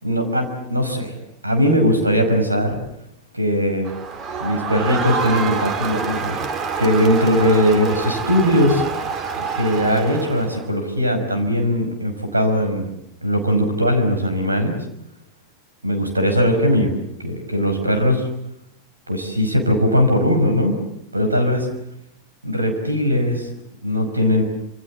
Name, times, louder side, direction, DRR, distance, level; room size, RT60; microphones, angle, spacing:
voice 1, 0.0-1.1 1.4-2.8 3.3-3.9 4.4-6.4 6.8-8.8 9.4-12.9 13.2-14.8 15.8-18.3 19.1-20.7 21.1-21.7 22.4-23.5 23.8-24.4, equal, 80° right, 6 dB, 5.5 m, -19 dB
Crowd, 3.8-10.7, right 5 dB, 30° right, 2.4 m, -27 dB
27.0 x 26.0 x 7.4 m, 0.80 s
figure-of-eight pair, 90°, 0 cm